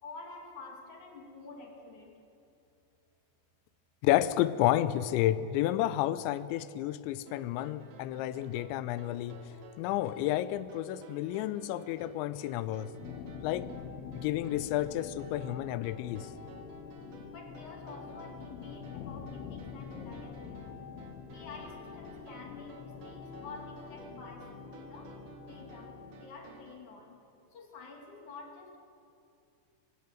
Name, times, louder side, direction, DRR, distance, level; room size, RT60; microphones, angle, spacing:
voice 1, 0.0-2.3 17.3-21.0 21.3-27.2 27.5-28.8, left 3 dB, 50° left, 1 dB, 2.8 m, -49 dB
voice 2, 4.0-9.4 9.8-12.9 13.4-13.7 14.1-16.3, left 13 dB, 85° left, 15 dB, 2.9 m, -30 dB
sound 1, 7.3-26.7, right 4 dB, 60° right, 3.4 m, -54 dB
sound 2, 12.9-26.3, left 7 dB, 70° left, 2.8 m, -46 dB
22.5 x 16.5 x 7.7 m, 2.5 s
omnidirectional pair, 5.3 m